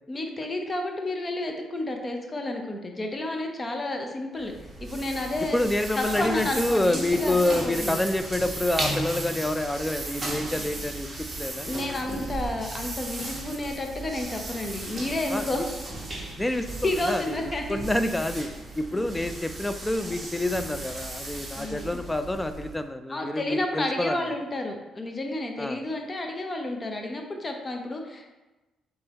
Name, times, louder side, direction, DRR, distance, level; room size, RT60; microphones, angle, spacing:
voice 1, 0.1-4.5 4.8-5.6 5.9-8.0 11.6-15.6 16.8-17.8 18.9-19.1 21.6-22.0 23.1-28.3, left 2 dB, 30° left, 3 dB, 0.7 m, -31 dB
sound 1, 4.4-22.8, right 2 dB, 20° right, 1.1 m, -36 dB
voice 2, 5.5-11.7 15.3-15.4 16.4-17.2 17.7-18.5 18.8-24.2 25.6-25.8, left 1 dB, 10° left, 9 dB, 0.3 m, -27 dB
3.4 x 3.3 x 4.1 m, 1.1 s
cardioid pair, 90°, 0 cm